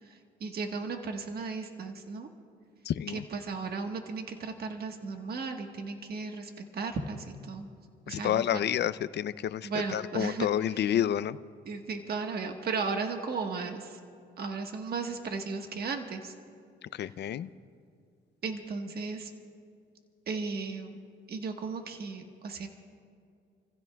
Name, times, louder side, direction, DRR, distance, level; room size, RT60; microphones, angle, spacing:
voice 1, 0.0-2.3 3.1-7.7 8.1-8.6 9.6-10.5 11.6-14.0 14.4-16.3 18.4-19.3 20.3-21.0 21.3-22.7, right 4 dB, 50° right, 4 dB, 1.4 m, -35 dB
voice 2, 2.8-3.2 8.1-11.4 16.8-17.5, left 10 dB, 60° left, 15 dB, 0.5 m, -30 dB
29.5 x 15.5 x 2.3 m, 2.3 s
cardioid pair, 90°, 20 cm